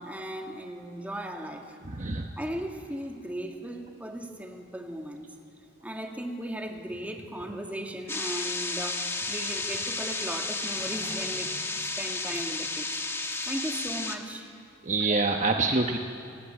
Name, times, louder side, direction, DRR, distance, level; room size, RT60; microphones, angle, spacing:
voice 1, 0.0-1.8 2.4-5.3 5.8-12.9 13.2-14.5 15.1-15.2, right 1 dB, 10° right, 2 dB, 2.1 m, -37 dB
voice 2, 1.8-2.3 14.8-16.0, right 3 dB, 35° right, 3 dB, 1.0 m, -26 dB
sound 1, 8.1-14.2, left 3 dB, 15° left, 1.3 m, -32 dB
28.5 x 19.5 x 8.9 m, 2.4 s
head